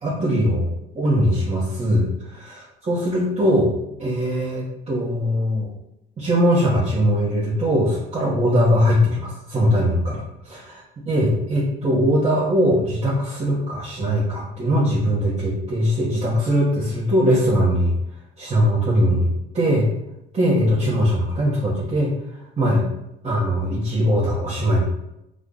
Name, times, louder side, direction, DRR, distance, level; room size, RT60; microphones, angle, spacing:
voice 1, 0.0-0.7 0.9-3.7 4.0-5.7 6.2-17.9 18.4-19.3 19.5-19.9 20.3-22.1 22.6-22.8 23.2-24.8, equal, 30° right, -9 dB, 1.4 m, -21 dB
5.0 x 2.4 x 4.0 m, 0.84 s
cardioid pair, 120°, 20 cm